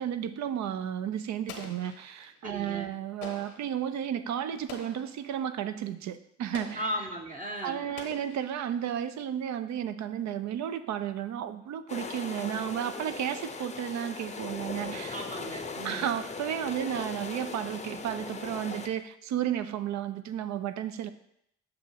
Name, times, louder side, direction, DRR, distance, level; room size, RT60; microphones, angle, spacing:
voice 1, 0.0-6.9 7.6-15.2 15.8-21.1, right 10 dB, 60° right, 11 dB, 0.5 m, -33 dB
Explosion, 1.5-2.4 3.2-3.8 4.7-5.2 6.5-7.1 8.0-8.8, left 6 dB, 85° left, 0.9 m, -46 dB
voice 2, 2.4-2.9 6.7-7.9 15.1-16.1, equal, 25° right, 0 dB, 0.8 m, -36 dB
sound 1, 11.9-18.9, left 4 dB, 20° left, 0.6 m, -39 dB
6.8 x 2.6 x 5.7 m, 0.75 s
hypercardioid pair, 55°, 32 cm